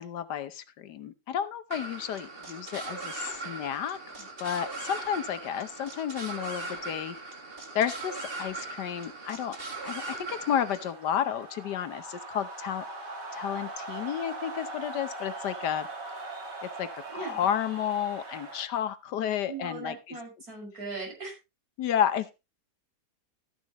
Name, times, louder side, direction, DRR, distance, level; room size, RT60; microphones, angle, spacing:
voice 1, 0.0-7.2 7.7-9.6 9.8-12.9 13.3-15.9 16.6-20.2 21.8-22.3, left 9 dB, 75° left, 12 dB, 1.4 m, -32 dB
sound 1, 1.7-10.9, right 3 dB, 35° right, 1.9 m, -39 dB
sound 2, 8.8-18.7, right 2 dB, 85° right, 3.0 m, -41 dB
voice 2, 17.1-17.5 19.5-21.3, right 3 dB, 60° right, 0 dB, 6.3 m, -39 dB
13.0 x 10.5 x 3.0 m, 0.26 s
omnidirectional pair, 1.8 m